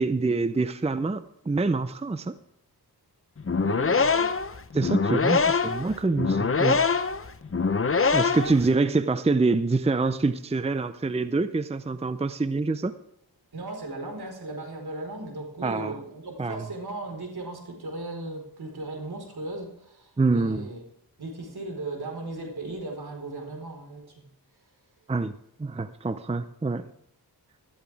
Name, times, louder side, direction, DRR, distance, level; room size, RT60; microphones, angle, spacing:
voice 1, 0.0-2.3 4.7-6.8 8.1-12.9 15.6-16.0 16.4-16.6 20.2-20.7 25.1-25.3 25.6-26.9, right 3 dB, 15° right, 12 dB, 0.6 m, -26 dB
sound 1, 3.4-8.7, left 5 dB, 35° left, 0.8 m, -24 dB
voice 2, 3.6-4.3 5.2-5.5 13.5-20.8 21.2-24.2, right 2 dB, 70° right, 3 dB, 4.4 m, -37 dB
13.5 x 13.5 x 3.5 m, 0.77 s
cardioid pair, 60°, 39 cm